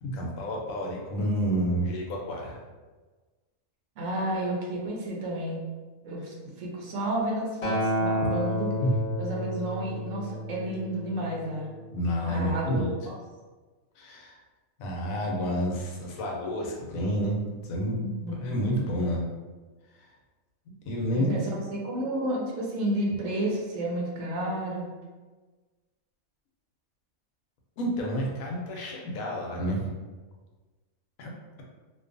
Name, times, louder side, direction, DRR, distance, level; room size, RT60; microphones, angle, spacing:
voice 1, 0.0-2.6 8.2-8.3 8.8-8.9 11.9-12.9 14.0-14.4 14.8-17.4 17.6-19.2 19.9-20.1 20.9-21.4 27.8-29.9 31.2-31.3, equal, 90° left, -1 dB, 1.0 m, -29 dB
voice 2, 4.0-5.6 6.0-8.7 9.2-11.7 12.3-13.1 18.0-18.4 21.1-24.9, right 1 dB, 70° right, -2 dB, 0.9 m, -31 dB
Acoustic guitar, 7.6-11.9 12.8-12.9, equal, 65° left, 0.9 m, -31 dB
2.6 x 2.2 x 2.4 m, 1.3 s
omnidirectional pair, 1.4 m